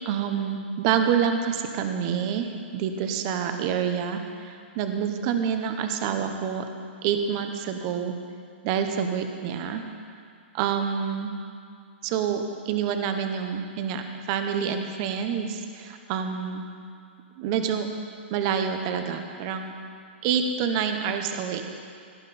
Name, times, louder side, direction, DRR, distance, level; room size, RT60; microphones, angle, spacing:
voice 1, 0.0-6.6 7.0-8.2 8.6-9.8 10.5-11.3 12.0-16.6 17.4-17.9 18.3-19.7 20.2-21.6, right 7 dB, 30° right, 6 dB, 0.9 m, -27 dB
17.5 x 12.0 x 4.2 m, 2.3 s
hypercardioid pair, 165°, 7 cm